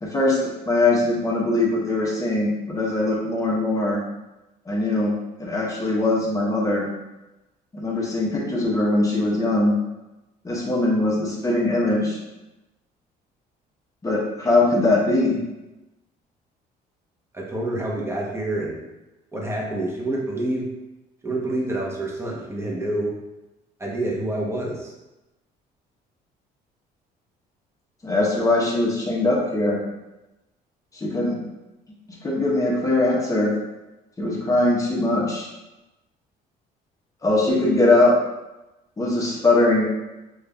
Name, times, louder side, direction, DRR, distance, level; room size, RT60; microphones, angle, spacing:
voice 1, 0.0-4.0 4.7-5.1 5.4-6.9 7.7-9.8 10.4-12.2 14.0-15.4 28.0-29.8 30.9-31.4 32.2-33.5 34.2-35.5 37.2-38.2 39.0-39.8, left 2 dB, 20° left, -4 dB, 0.9 m, -21 dB
voice 2, 17.3-18.7 19.3-20.6 21.2-23.1 23.8-24.9, right 1 dB, 15° right, -3 dB, 0.9 m, -27 dB
5.1 x 2.5 x 2.3 m, 1.0 s
cardioid pair, 110°, 17 cm